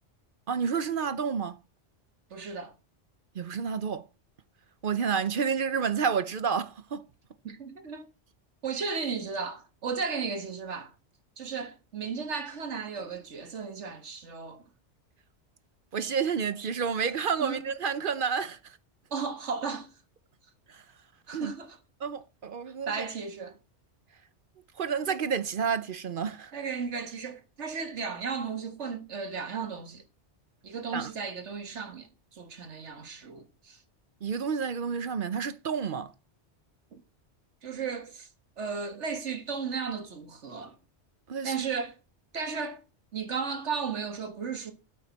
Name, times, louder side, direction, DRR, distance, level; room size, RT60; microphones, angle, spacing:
voice 1, 0.5-1.6 3.4-4.0 4.8-7.0 15.9-18.8 20.7-20.8 21.3-21.5 22.0-23.0 24.8-26.5 30.9-31.1 34.2-36.1 41.3-41.7, right 6 dB, 55° right, 0.8 m, -30 dB
voice 2, 2.3-2.7 7.4-8.1 8.6-10.9 11.4-14.6 17.4-17.7 19.1-19.9 21.3-21.8 22.9-23.6 26.5-30.0 30.6-33.8 36.9-37.0 37.6-38.3 38.6-40.8 41.4-42.0 42.3-42.8 43.1-44.7, right 5 dB, 75° right, 1.7 m, -35 dB
13.0 x 8.5 x 4.1 m
omnidirectional pair, 1.2 m